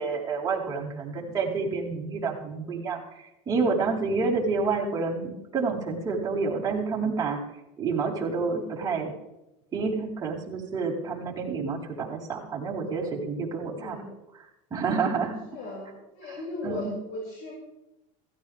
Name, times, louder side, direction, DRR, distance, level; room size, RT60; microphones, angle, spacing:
voice 1, 0.0-7.4 7.8-9.1 9.7-14.0 14.3-15.4 16.2-16.9, right 4 dB, 20° right, -4 dB, 4.7 m, -29 dB
voice 2, 8.4-8.7 13.6-14.1 15.5-17.5, left 2 dB, 65° left, -4 dB, 7.0 m, -38 dB
16.5 x 15.5 x 3.7 m, 0.92 s
supercardioid pair, 135°, 17 cm